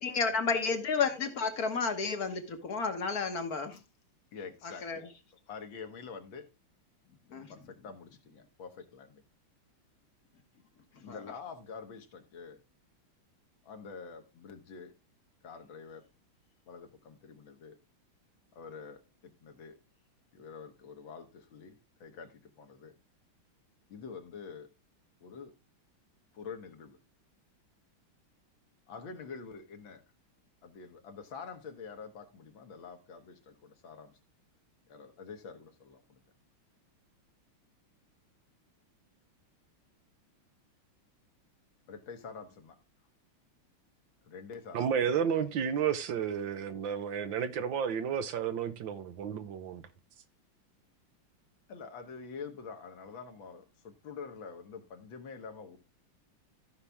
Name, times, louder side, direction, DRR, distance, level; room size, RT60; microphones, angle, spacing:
voice 1, 0.0-3.8 4.8-5.1 7.3-7.6 10.9-11.2, left 5 dB, 50° left, 1.6 m, -32 dB
voice 2, 4.3-5.0 5.5-6.5 7.5-9.2 11.0-12.6 13.6-14.9 15.4-16.1 16.7-17.8 18.5-19.8 20.3-22.9 23.9-24.7 25.2-25.5 26.3-27.0 28.9-30.0 30.6-34.2 34.9-36.2 41.9-42.8 44.2-45.2 51.7-55.8, left 5 dB, 65° left, 2.0 m, -46 dB
voice 3, 44.7-49.8, right 8 dB, 70° right, 1.5 m, -32 dB
14.5 x 5.7 x 3.5 m
omnidirectional pair, 2.3 m